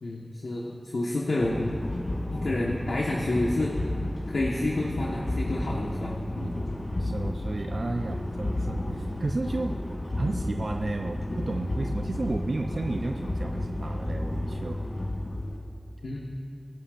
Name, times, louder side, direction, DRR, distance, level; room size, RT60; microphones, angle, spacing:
voice 1, 0.0-1.7 2.4-3.8 4.3-6.5 16.0-16.2, left 2 dB, 90° left, -3 dB, 1.2 m, -29 dB
sound 1, 1.4-15.6, left 1 dB, 65° left, 2.7 m, -32 dB
voice 2, 7.0-9.8 10.2-14.8, right 2 dB, 65° right, 3 dB, 0.4 m, -32 dB
24.0 x 10.5 x 2.5 m, 2.5 s
wide cardioid pair, 45°, 0 cm